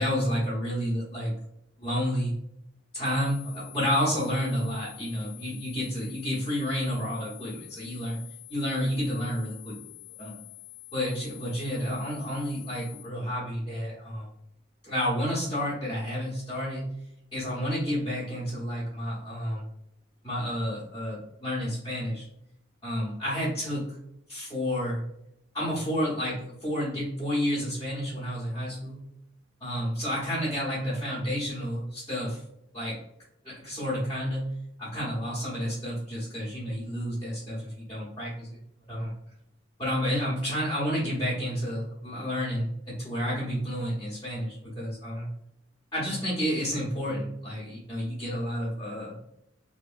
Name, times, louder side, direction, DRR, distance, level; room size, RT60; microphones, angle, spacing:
voice 1, 0.0-1.3 1.8-2.3 2.9-8.2 8.5-9.8 10.2-10.4 10.9-14.3 14.8-16.8 17.3-19.7 20.2-22.3 22.8-24.0 24.3-25.0 25.5-29.1 29.6-32.4 32.7-33.0 33.4-34.5 34.8-38.6 38.9-39.1 39.8-45.3 45.9-49.1, equal, 20° left, -9 dB, 0.9 m, -30 dB
sound 1, 3.0-13.0, left 23 dB, 65° left, 0.9 m, -48 dB
2.9 x 2.7 x 2.4 m, 0.80 s
head